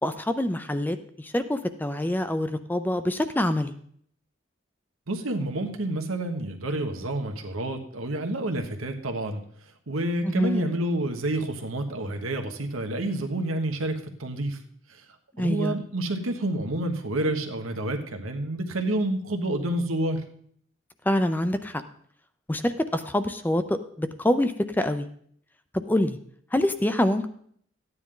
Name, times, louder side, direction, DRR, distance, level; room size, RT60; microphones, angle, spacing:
voice 1, 0.0-3.7 10.2-10.7 15.4-15.7 21.1-21.8 22.5-25.1 25.7-26.2 26.5-27.3, left 1 dB, 10° left, 10 dB, 0.4 m, -26 dB
voice 2, 5.1-9.4 9.9-14.6 14.9-15.0 15.4-20.2, right 1 dB, 85° right, 5 dB, 1.3 m, -29 dB
13.5 x 9.5 x 3.8 m, 0.63 s
head